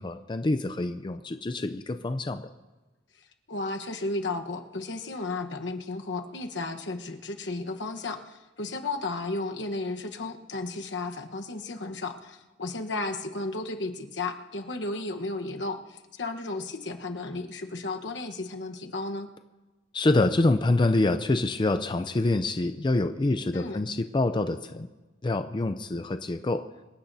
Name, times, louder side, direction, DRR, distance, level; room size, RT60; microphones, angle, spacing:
voice 1, 0.0-2.4 19.9-24.9 25.2-26.6, left 2 dB, 25° left, 9 dB, 0.5 m, -26 dB
voice 2, 3.5-19.3 23.5-23.8, left 2 dB, 70° left, 5 dB, 1.1 m, -34 dB
25.5 x 16.0 x 2.7 m, 1.2 s
head